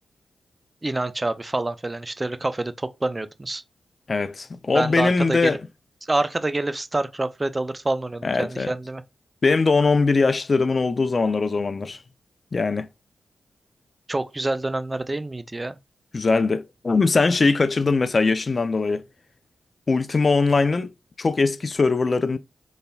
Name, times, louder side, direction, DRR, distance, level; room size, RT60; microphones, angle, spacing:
voice 1, 0.8-3.6 4.7-5.6 6.0-9.0 14.1-15.8, right 2 dB, 30° right, 0.5 m, -27 dB
voice 2, 4.1-5.6 8.2-8.7 9.4-12.0 12.5-12.9 16.1-19.0 19.9-20.9 21.2-22.4, left 4 dB, 50° left, 0.4 m, -21 dB
4.1 x 3.3 x 2.3 m
supercardioid pair, 40°, 0 cm